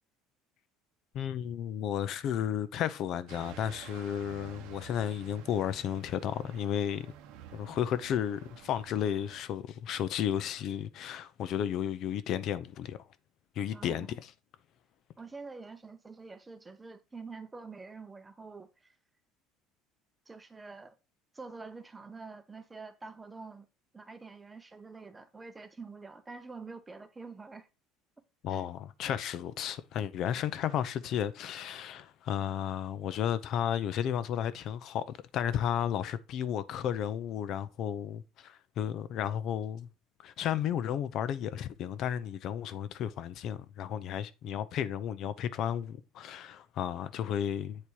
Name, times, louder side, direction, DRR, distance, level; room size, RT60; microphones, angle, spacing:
voice 1, 1.1-7.1 7.5-13.0 13.6-14.1 28.4-35.0 35.3-39.9 40.2-47.9, left 9 dB, 45° left, 0.7 m, -33 dB
sound 1, 3.3-9.4, right 10 dB, 75° right, 1.1 m, -51 dB
voice 2, 13.7-14.2 15.2-18.9 20.3-20.9 21.3-23.7 23.9-27.7 28.5-28.7, right 4 dB, 10° right, 0.8 m, -46 dB
8.5 x 4.3 x 4.6 m
cardioid pair, 155°, 0 cm